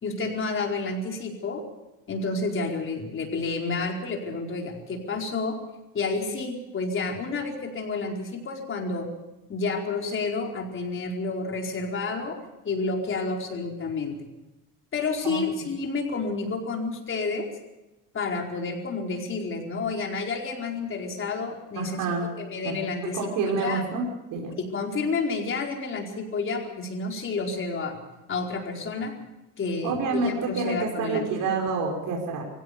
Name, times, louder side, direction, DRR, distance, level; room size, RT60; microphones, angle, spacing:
voice 1, 0.0-1.6 2.1-5.6 5.9-9.1 9.5-12.4 12.6-14.2 14.9-17.5 18.1-22.0 22.4-23.8 24.6-28.0 28.3-29.2 29.6-31.3, left 3 dB, 40° left, 1 dB, 4.7 m, -30 dB
voice 2, 21.8-22.3 22.6-22.8 23.0-24.5 29.8-32.4, right 4 dB, 70° right, 0 dB, 5.2 m, -28 dB
24.0 x 16.5 x 6.8 m, 1.0 s
cardioid pair, 115°, 32 cm